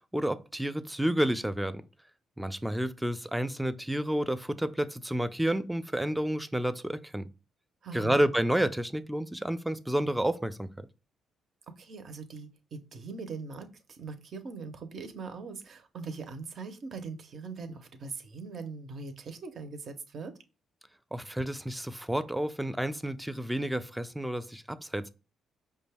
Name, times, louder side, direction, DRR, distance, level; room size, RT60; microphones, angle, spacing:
voice 1, 0.1-1.8 2.4-7.3 7.9-10.9 21.1-25.1, right 1 dB, 5° right, 0.4 m, -30 dB
voice 2, 7.8-8.2 11.8-20.3, right 4 dB, 55° right, 0.7 m, -41 dB
5.1 x 2.3 x 3.3 m
cardioid pair, 90°, 0 cm